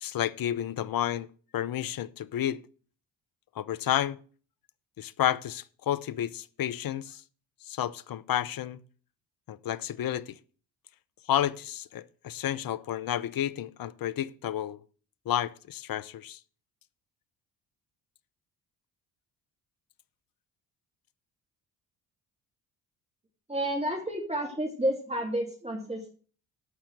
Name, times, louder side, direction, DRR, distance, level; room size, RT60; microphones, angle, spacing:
voice 1, 0.0-1.3 1.5-2.6 3.6-4.2 5.0-7.2 7.7-8.8 9.5-10.3 11.3-14.8 15.3-16.4, left 11 dB, 45° left, 0.8 m, -31 dB
voice 2, 23.5-26.1, right 1 dB, 15° right, 2.7 m, -30 dB
13.0 x 5.8 x 6.4 m
hypercardioid pair, 50°, 48 cm